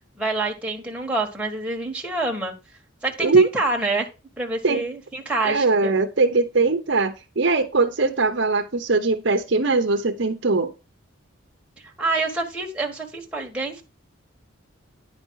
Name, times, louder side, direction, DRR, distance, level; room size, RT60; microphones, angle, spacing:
voice 1, 0.2-2.5 3.0-4.1 4.4-5.9 11.8-13.8, right 2 dB, 5° right, 1.6 m, -27 dB
voice 2, 5.4-10.7, right 3 dB, 60° right, 0.8 m, -20 dB
10.0 x 5.2 x 4.7 m
head